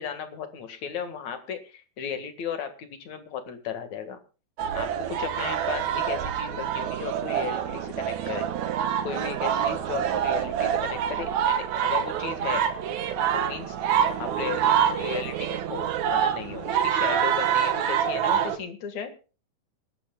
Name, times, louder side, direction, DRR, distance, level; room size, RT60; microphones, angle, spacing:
voice 1, 0.0-4.2 4.7-8.5 9.0-12.6 13.3-13.8 14.2-19.1, left 7 dB, 55° left, 8 dB, 2.8 m, -35 dB
sound 1, 4.6-18.6, right 9 dB, 65° right, 2.1 m, -26 dB
26.5 x 12.0 x 2.3 m, 0.34 s
omnidirectional pair, 4.3 m